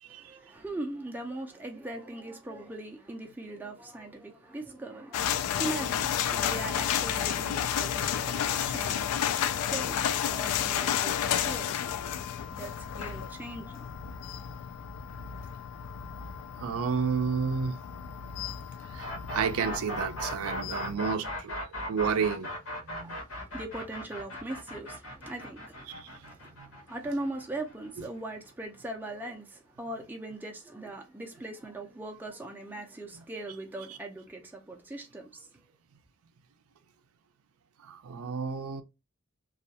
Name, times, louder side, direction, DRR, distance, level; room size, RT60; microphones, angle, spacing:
voice 1, 0.0-11.9 12.5-13.9 23.0-35.7, right 2 dB, 10° right, 0.4 m, -40 dB
sound 1, 5.1-20.9, left 9 dB, 85° left, 0.3 m, -32 dB
voice 2, 16.6-17.8 18.8-22.5 22.8-23.2 25.9-26.2 26.6-26.7 33.9-34.0 37.8-38.8, right 6 dB, 75° right, 0.4 m, -31 dB
sound 2, 19.0-28.8, equal, 60° left, 0.9 m, -38 dB
2.3 x 2.2 x 2.7 m
head